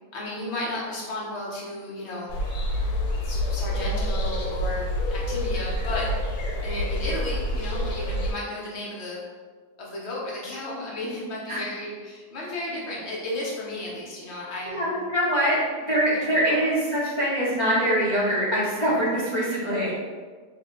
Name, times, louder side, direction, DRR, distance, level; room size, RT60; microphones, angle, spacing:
voice 1, 0.1-2.3 3.2-6.1 6.6-9.2 9.8-14.9 16.1-16.2 16.5-16.6, left 1 dB, 55° left, -5 dB, 0.9 m, -34 dB
sound 1, 2.3-8.3, left 1 dB, 85° left, 1.1 m, -27 dB
voice 2, 14.7-15.6 15.9-19.9, equal, 35° left, -10 dB, 0.4 m, -23 dB
2.8 x 2.1 x 3.7 m, 1.5 s
omnidirectional pair, 1.6 m